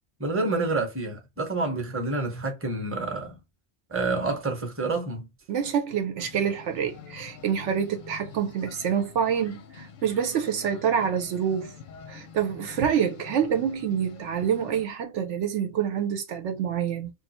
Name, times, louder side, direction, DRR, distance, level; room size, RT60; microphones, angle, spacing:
voice 1, 0.2-3.4 3.9-5.3, right 3 dB, 10° right, 0.8 m, -28 dB
voice 2, 5.5-11.7 12.1-17.1, right 8 dB, 75° right, 0.9 m, -27 dB
sound 1, 6.2-14.9, left 6 dB, 50° left, 0.6 m, -46 dB
2.5 x 2.3 x 4.1 m
omnidirectional pair, 1.3 m